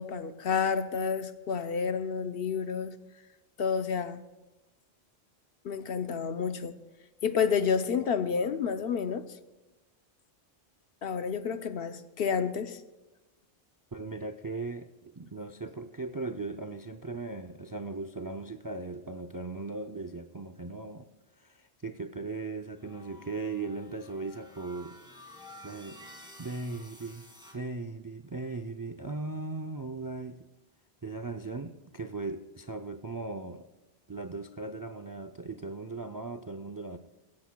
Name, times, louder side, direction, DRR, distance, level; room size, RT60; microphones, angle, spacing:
voice 1, 0.0-3.0 3.6-4.2 5.6-6.7 7.2-9.2 11.0-12.8, left 6 dB, 70° left, 0.9 m, -30 dB
voice 2, 13.9-21.1 21.4-25.0 25.6-26.0 26.4-27.3 27.5-30.5 31.0-33.7 34.1-37.0, right 3 dB, 35° right, 0.3 m, -38 dB
sound 1, 22.8-27.6, left 1 dB, 5° right, 2.0 m, -51 dB
18.5 x 16.0 x 2.2 m
omnidirectional pair, 1.0 m